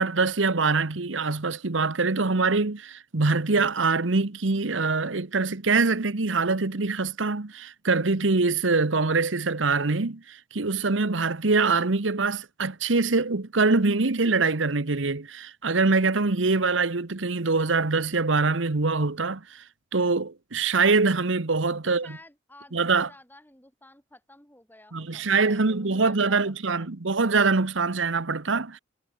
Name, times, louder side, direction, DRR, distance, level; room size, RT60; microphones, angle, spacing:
voice 1, 0.0-19.6 19.9-22.1 22.7-23.1 24.9-28.8, right 3 dB, 80° right, 1.2 m, -24 dB
voice 2, 21.8-26.9, left 1 dB, 10° left, 7.4 m, -53 dB
head